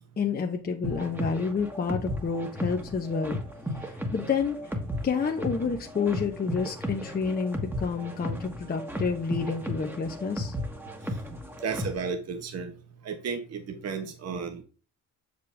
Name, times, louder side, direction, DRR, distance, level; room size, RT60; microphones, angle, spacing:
voice 1, 0.2-3.4 3.8-4.6 5.0-10.5, left 5 dB, 30° left, 3 dB, 0.8 m, -29 dB
sound 1, 0.8-12.1, equal, 5° right, 1.3 m, -35 dB
voice 2, 11.6-12.7 13.0-14.6, right 5 dB, 55° right, 5 dB, 1.3 m, -33 dB
6.6 x 5.2 x 3.4 m, 0.36 s
cardioid pair, 90°, 30 cm